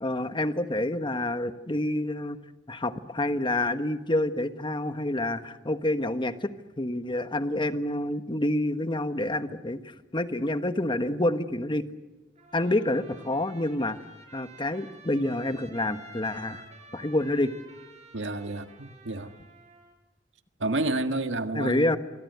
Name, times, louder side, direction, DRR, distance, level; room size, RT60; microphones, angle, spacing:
voice 1, 0.0-2.4 2.7-9.8 10.1-11.8 12.5-14.0 14.3-16.6 16.9-17.5 21.5-22.0, left 1 dB, 25° left, 1.3 m, -28 dB
Trumpet, 12.3-19.9, right 3 dB, 40° right, 5.4 m, -51 dB
voice 2, 18.1-19.4 20.6-21.9, right 2 dB, 85° right, 1.7 m, -30 dB
28.5 x 24.0 x 8.1 m
head